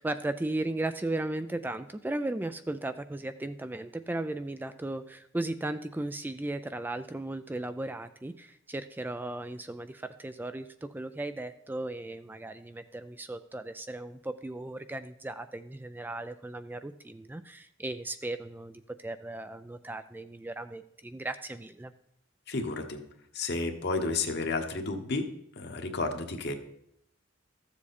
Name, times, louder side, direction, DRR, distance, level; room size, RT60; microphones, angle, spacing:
voice 1, 0.0-21.9, right 2 dB, 10° right, 10 dB, 0.3 m, -36 dB
voice 2, 22.5-23.0 23.3-25.3 25.6-26.5, left 3 dB, 60° left, 4 dB, 1.2 m, -31 dB
13.5 x 7.3 x 4.2 m, 0.76 s
head